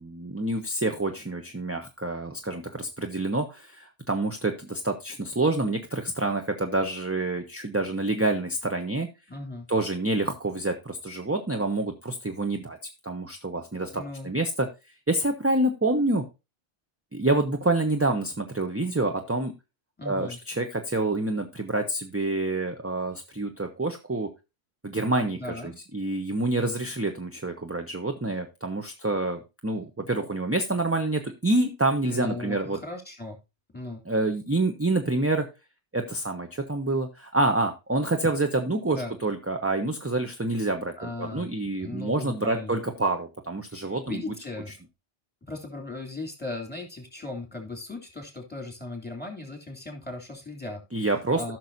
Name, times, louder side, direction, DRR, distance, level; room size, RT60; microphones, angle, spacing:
voice 1, 0.0-9.1 9.7-12.8 13.0-14.7 15.1-16.2 17.1-19.5 20.0-24.3 24.8-32.8 34.1-35.5 35.9-44.2 50.9-51.4, right 2 dB, 15° right, 5 dB, 0.6 m, -27 dB
voice 2, 9.3-9.7 13.9-14.3 20.0-20.4 25.4-25.7 32.1-33.4 33.7-34.0 38.9-39.1 41.0-41.5 41.8-42.8 43.7-44.7 45.5-51.1 51.3-51.6, left 2 dB, 10° left, 2 dB, 2.8 m, -37 dB
15.0 x 6.1 x 2.6 m, 0.26 s
omnidirectional pair, 1.2 m